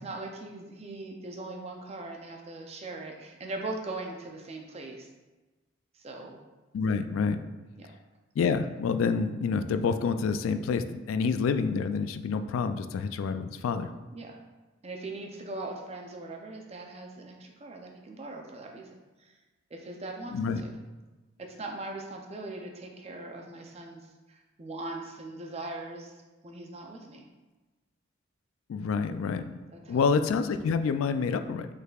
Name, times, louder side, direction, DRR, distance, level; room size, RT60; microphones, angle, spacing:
voice 1, 0.0-5.1 5.9-6.4 7.8-7.9 14.1-14.4 14.8-18.9 19.2-19.3 19.7-20.7 21.4-26.1 26.4-27.2 29.7-30.1, right 2 dB, 30° right, 1 dB, 0.5 m, -40 dB
voice 2, 6.7-7.4 8.4-13.9 20.3-20.6 28.7-29.6 29.9-31.7, left 5 dB, 90° left, 10 dB, 0.3 m, -28 dB
5.4 x 3.9 x 2.3 m, 1.2 s
head